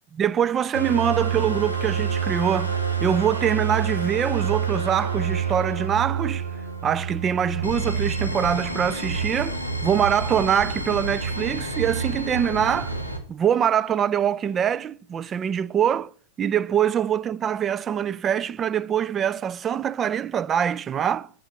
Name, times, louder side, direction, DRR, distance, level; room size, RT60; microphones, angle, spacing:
voice 1, 0.2-2.7 3.0-6.5 6.8-13.0 13.3-16.1 16.4-21.3, right 9 dB, 25° right, 0.4 m, -24 dB
sound 1, 0.7-13.2, right 5 dB, 90° right, 1.5 m, -28 dB
8.2 x 6.3 x 5.6 m
figure-of-eight pair, 90°, 0 cm